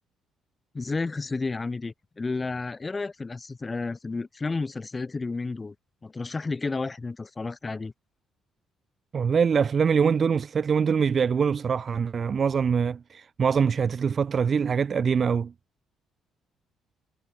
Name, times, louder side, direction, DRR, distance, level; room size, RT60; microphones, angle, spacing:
voice 1, 0.7-5.7 6.0-7.9, left 3 dB, 20° left, 5.7 m, -31 dB
voice 2, 9.1-15.5, right 6 dB, 40° right, 1.1 m, -24 dB
cardioid pair, 110°, 0 cm